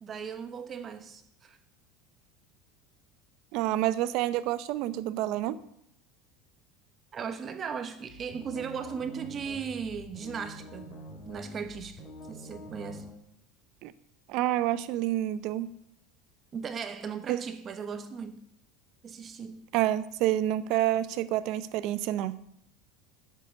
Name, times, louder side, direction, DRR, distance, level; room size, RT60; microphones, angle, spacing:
voice 1, 0.0-1.6 7.1-13.1 16.5-18.4 19.0-19.6, right 6 dB, 30° right, 1.0 m, -37 dB
voice 2, 3.5-5.6 13.8-13.9 14.3-15.7 17.3-17.4 19.7-22.3, right 13 dB, 55° right, 0.7 m, -28 dB
sound 1, 8.1-13.1, equal, 40° left, 3.7 m, -46 dB
8.6 x 7.6 x 8.8 m
supercardioid pair, 140°, 0 cm